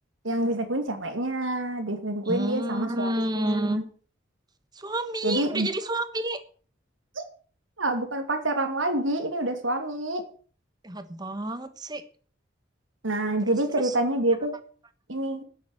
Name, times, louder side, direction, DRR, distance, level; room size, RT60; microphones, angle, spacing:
voice 1, 0.2-3.8 5.2-5.7 7.2-7.3 7.8-10.2 13.0-14.5 15.1-15.4, right 1 dB, 90° right, 6 dB, 2.6 m, -27 dB
voice 2, 2.2-3.8 4.7-6.4 10.8-12.0 13.8-13.9, right 1 dB, 20° right, 12 dB, 1.3 m, -29 dB
11.0 x 8.2 x 7.9 m, 0.43 s
head